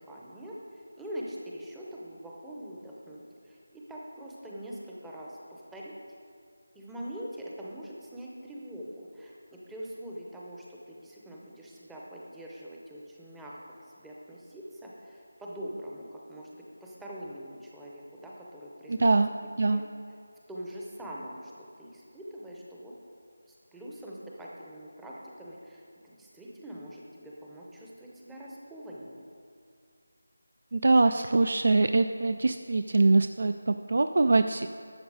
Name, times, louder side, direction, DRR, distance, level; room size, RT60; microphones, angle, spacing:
voice 1, 0.0-5.9 6.7-13.6 14.0-19.2 19.6-19.8 20.5-22.9 23.5-29.2, equal, 5° right, -5 dB, 0.7 m, -43 dB
voice 2, 18.9-19.3 19.6-19.8 30.7-34.7, right 3 dB, 55° right, 9 dB, 0.3 m, -23 dB
12.5 x 7.0 x 4.8 m, 2.3 s
figure-of-eight pair, 175°, 0 cm